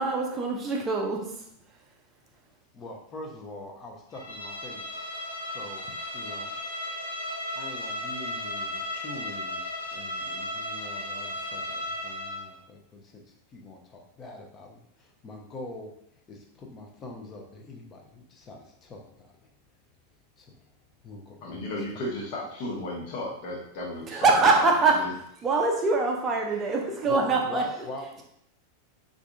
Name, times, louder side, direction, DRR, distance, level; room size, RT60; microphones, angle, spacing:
voice 1, 0.0-1.8 24.1-25.0 25.4-27.6, right 3 dB, 25° right, 0 dB, 0.5 m, -24 dB
voice 2, 2.7-5.0 5.5-6.6 7.5-9.6 9.9-15.9 16.3-19.5 20.4-20.5 21.0-21.6 27.1-28.2, left 2 dB, 25° left, 1 dB, 0.7 m, -43 dB
Bowed string instrument, 4.1-12.5, left 1 dB, 80° left, 0.7 m, -35 dB
voice 3, 21.4-24.7 25.0-25.1, left 1 dB, 45° left, -2 dB, 1.1 m, -34 dB
4.8 x 2.5 x 2.3 m, 0.73 s
figure-of-eight pair, 90°, 0 cm